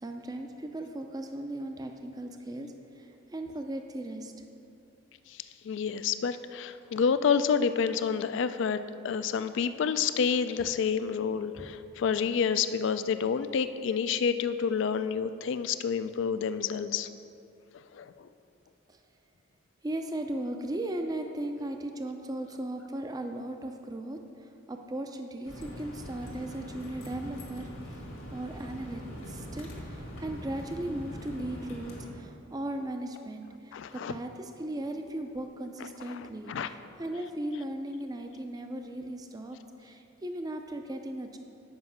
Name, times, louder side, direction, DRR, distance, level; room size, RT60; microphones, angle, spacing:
voice 1, 0.0-4.3 11.6-11.7 18.9-19.0 19.8-28.0 28.3-41.4, right 1 dB, 20° right, 5 dB, 0.4 m, -37 dB
voice 2, 5.3-17.1 17.7-18.3 33.7-34.2 36.0-36.7, left 6 dB, 55° left, 12 dB, 0.3 m, -29 dB
sound 1, 25.4-32.1, equal, 75° left, 1.6 m, -42 dB
7.9 x 5.3 x 5.5 m, 2.7 s
head